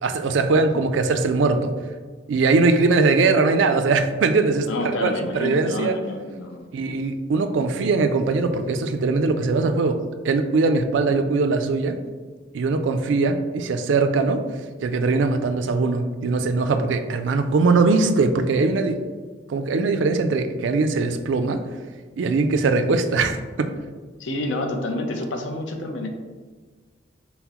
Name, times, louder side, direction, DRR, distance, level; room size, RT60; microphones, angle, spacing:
voice 1, 0.0-1.7 2.3-5.9 6.7-12.0 12.5-14.4 14.8-19.0 19.5-21.6 22.2-23.7, right 3 dB, 75° right, 7 dB, 0.4 m, -21 dB
voice 2, 4.7-6.7 11.1-11.2 24.2-26.1, left 2 dB, 80° left, 4 dB, 0.6 m, -28 dB
5.6 x 2.1 x 2.9 m, 1.5 s
head